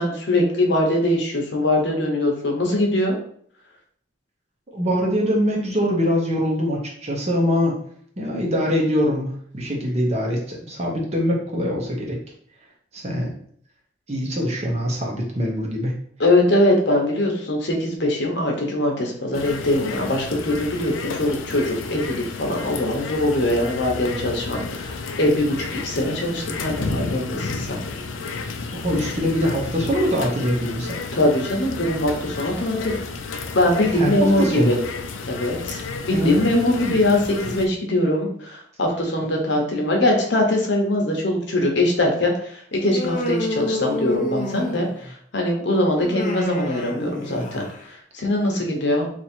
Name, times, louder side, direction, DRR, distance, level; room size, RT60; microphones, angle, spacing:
voice 1, 0.0-3.2 16.2-27.8 31.1-33.0 33.5-34.8 35.3-49.1, left 1 dB, 60° left, 1 dB, 0.9 m, -22 dB
voice 2, 4.7-7.8 8.2-12.2 12.9-13.3 14.1-16.0 28.7-31.0 34.0-34.1 34.4-34.8 36.1-37.0, equal, 35° right, -1 dB, 0.8 m, -23 dB
sound 1, 19.3-37.7, left 4 dB, 85° left, 0.5 m, -32 dB
Human voice, 42.8-45.1 46.0-47.8, left 1 dB, 40° left, 0.6 m, -29 dB
2.9 x 2.7 x 4.3 m, 0.62 s
head